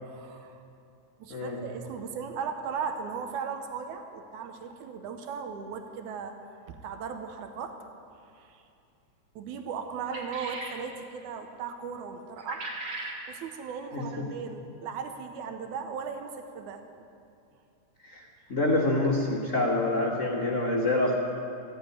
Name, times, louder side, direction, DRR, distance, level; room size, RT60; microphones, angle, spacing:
voice 1, 0.0-0.6 1.2-6.4 6.7-7.8 8.4-8.6 9.4-12.7 13.3-16.9, right 6 dB, 90° right, 6 dB, 2.3 m, -37 dB
sound 1, 10.0-10.8 12.4-13.2, right 2 dB, 65° right, 3.2 m, -38 dB
voice 2, 13.9-14.3 18.0-18.2 18.5-21.1, left 2 dB, 60° left, -3 dB, 0.7 m, -26 dB
15.0 x 8.6 x 9.6 m, 2.6 s
omnidirectional pair, 3.4 m